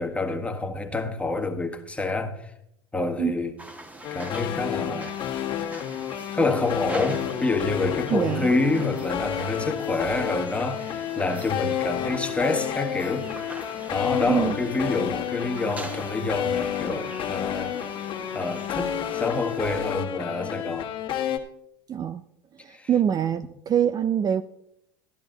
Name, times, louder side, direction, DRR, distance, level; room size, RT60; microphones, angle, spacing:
voice 1, 0.0-2.5 2.9-3.6 4.1-5.1 6.3-13.3 13.9-17.8 18.3-20.9 22.7-22.9, left 2 dB, 10° left, 1.6 m, -27 dB
sound 1, 3.6-19.6, right 1 dB, 10° right, 1.3 m, -43 dB
sound 2, 4.0-21.4, left 10 dB, 45° left, 1.7 m, -30 dB
voice 2, 8.1-8.5 14.3-14.6 21.9-22.2 22.6-24.4, right 9 dB, 30° right, 0.5 m, -24 dB
13.5 x 11.5 x 3.9 m
hypercardioid pair, 85°, 12 cm